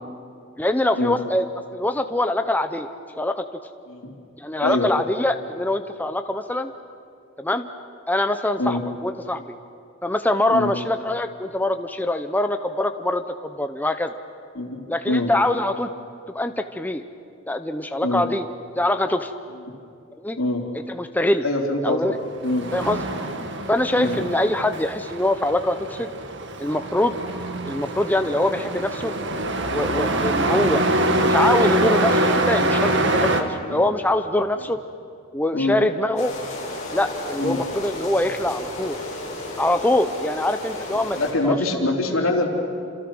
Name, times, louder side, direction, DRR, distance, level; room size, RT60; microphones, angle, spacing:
voice 1, 0.6-1.5 1.7-2.9 3.1-3.4 4.4-6.7 7.4-7.7 8.1-9.4 10.0-14.1 14.9-15.9 16.3-17.0 17.5-18.4 18.8-19.3 20.2-20.4 20.9-21.4 21.8-22.2 22.7-23.0 23.7-26.1 26.6-27.2 27.7-29.1 29.7-30.8 31.2-34.8 35.3-36.3 36.9-39.0 39.6-41.2 41.4-41.6, left 1 dB, 10° left, 7 dB, 0.7 m, -23 dB
voice 2, 4.6-4.9 8.6-8.8 10.5-10.7 14.6-14.8 15.1-15.3 18.0-18.3 20.4-20.6 21.4-22.2 22.4-22.7 23.9-24.2 33.7-33.8 35.5-35.8 37.4-37.6 40.9-42.5, left 2 dB, 80° left, 1 dB, 3.5 m, -24 dB
Truck, 22.3-33.4, right 1 dB, 60° right, 1.8 m, -24 dB
sound 1, 36.2-41.3, left 2 dB, 35° left, 7.7 m, -33 dB
28.5 x 27.0 x 6.2 m, 2.4 s
head